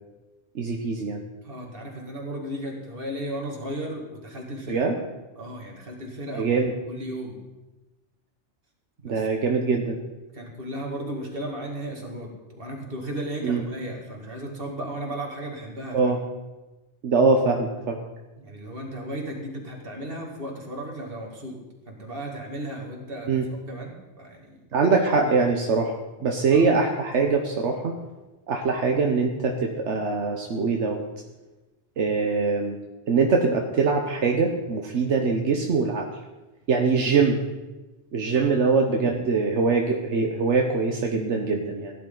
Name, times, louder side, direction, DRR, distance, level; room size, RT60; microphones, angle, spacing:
voice 1, 0.5-1.2 4.7-5.0 6.3-6.7 9.0-10.0 13.4-13.6 15.9-16.2 17.0-18.0 23.3-23.4 24.7-27.9 28.5-31.0 32.0-32.8 33.1-36.0 36.7-37.4 38.1-41.9, right 4 dB, 80° right, 2 dB, 1.3 m, -23 dB
voice 2, 1.4-4.8 5.4-6.6 6.9-7.4 9.0-9.2 10.3-16.1 18.4-21.6 21.9-23.3 23.7-24.6 25.1-25.4 26.5-26.7 38.4-38.6, right 1 dB, 55° right, 0 dB, 2.5 m, -35 dB
17.0 x 11.0 x 3.9 m, 1.1 s
omnidirectional pair, 1.2 m